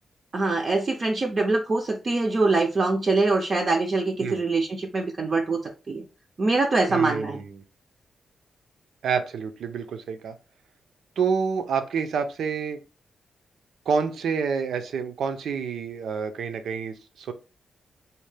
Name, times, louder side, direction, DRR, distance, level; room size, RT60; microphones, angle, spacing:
voice 1, 0.3-6.1 6.4-7.4, right 3 dB, 30° right, 2 dB, 0.4 m, -24 dB
voice 2, 6.9-7.6 9.0-10.3 11.2-12.8 13.9-17.3, right 6 dB, 90° right, 8 dB, 0.5 m, -28 dB
4.2 x 2.1 x 3.2 m, 0.31 s
wide cardioid pair, 170°, 0 cm